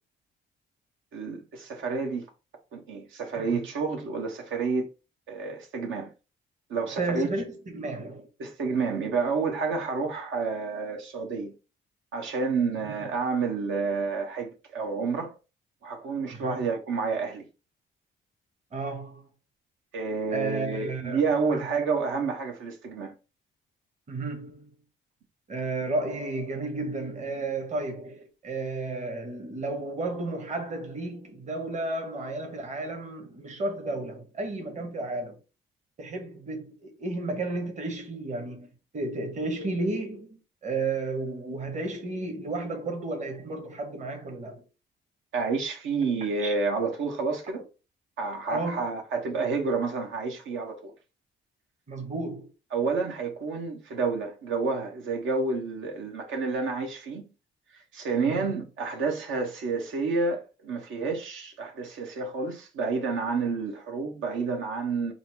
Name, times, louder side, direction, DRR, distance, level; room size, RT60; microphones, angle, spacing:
voice 1, 1.1-2.3 2.7-4.9 5.3-6.1 6.7-7.3 8.4-11.5 12.1-15.3 15.8-17.4 19.9-23.1 45.3-47.6 48.2-50.9 52.7-57.3 57.7-65.1, right 4 dB, 75° right, 1.1 m, -29 dB
voice 2, 7.0-8.3 12.9-13.0 16.3-16.7 18.7-19.3 20.3-21.2 21.5-21.7 24.1-24.7 25.5-35.4 36.0-40.3 40.6-44.6 46.4-46.5 48.5-48.9 51.9-52.5 58.2-58.5, right 2 dB, 35° right, 1.0 m, -33 dB
4.0 x 2.0 x 4.4 m
cardioid pair, 90°, 20 cm